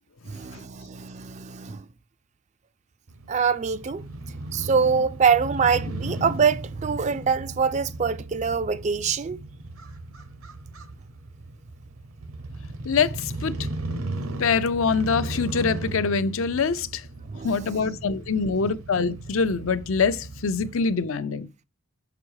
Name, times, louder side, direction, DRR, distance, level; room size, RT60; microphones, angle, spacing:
voice 1, 0.3-1.9 3.3-4.0 4.5-9.4 17.3-17.8 18.6-18.7, right 6 dB, 35° right, 0.3 m, -24 dB
Crow / Motorcycle, 3.1-21.0, right 2 dB, 80° right, 1.0 m, -36 dB
voice 2, 12.8-13.6 14.4-17.0 17.4-21.5, left 5 dB, 70° left, 0.6 m, -24 dB
5.9 x 5.4 x 4.7 m
head